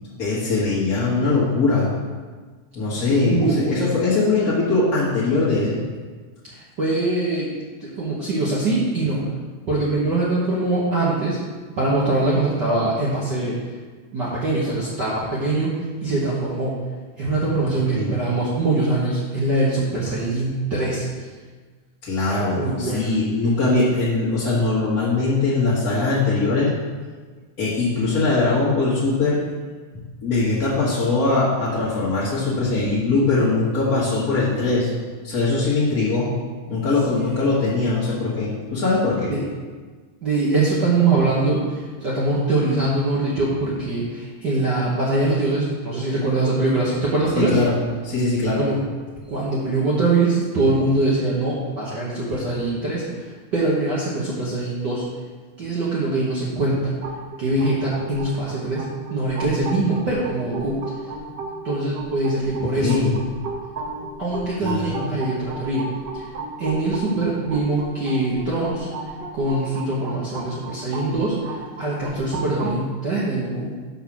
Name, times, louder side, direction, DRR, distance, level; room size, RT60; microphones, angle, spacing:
voice 1, 0.2-1.9 2.7-5.8 17.7-18.1 22.0-26.7 27.6-29.4 30.2-34.9 35.2-36.4 36.7-39.3 47.3-47.7 48.0-48.6 62.6-63.1 64.6-65.2, left 3 dB, 40° left, -9 dB, 1.4 m, -21 dB
voice 2, 2.9-3.8 6.5-7.5 7.8-9.2 9.7-11.4 11.8-13.6 14.1-15.7 16.0-16.7 17.2-21.0 22.5-23.1 37.2-37.4 39.3-39.4 40.2-47.6 48.6-48.8 49.3-53.2 53.5-55.1 55.6-56.9 57.4-60.8 61.6-63.0 64.2-65.9 66.1-66.3 66.6-68.9 69.3-73.7, right 2 dB, 60° right, -7 dB, 1.1 m, -23 dB
sound 1, 57.0-72.8, right 3 dB, 85° right, 0.9 m, -34 dB
6.4 x 5.6 x 6.0 m, 1.4 s
omnidirectional pair, 3.6 m